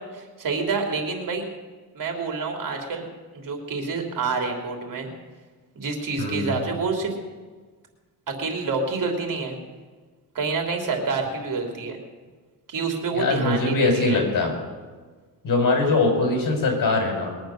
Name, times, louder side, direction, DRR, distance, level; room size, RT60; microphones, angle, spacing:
voice 1, 0.0-1.4 1.9-3.0 3.3-5.1 5.7-7.1 8.3-9.6 10.3-12.0 12.7-14.2, right 4 dB, 60° right, 2 dB, 3.3 m, -27 dB
voice 2, 6.2-6.6 13.1-14.6 15.4-17.3, left 3 dB, 60° left, 3 dB, 4.9 m, -22 dB
21.5 x 9.2 x 6.5 m, 1.4 s
cardioid pair, 120°, 36 cm